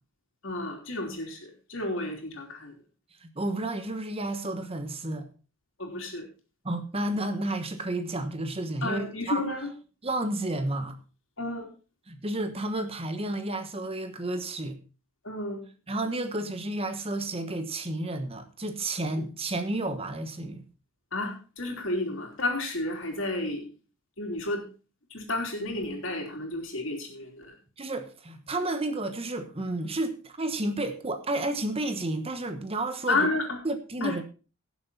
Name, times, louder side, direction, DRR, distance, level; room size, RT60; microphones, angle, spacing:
voice 1, 0.4-2.7 5.8-6.3 8.8-9.7 11.4-11.7 15.2-15.6 21.1-23.6 24.2-24.6 25.1-27.5 33.1-33.6 34.0-34.1, left 2 dB, 65° left, 2 dB, 3.4 m, -31 dB
voice 2, 3.2-5.3 6.6-9.4 10.0-11.0 12.1-14.8 15.9-20.6 27.8-33.3 33.6-34.2, right 2 dB, 30° right, 8 dB, 1.2 m, -31 dB
17.5 x 7.3 x 4.1 m, 0.34 s
head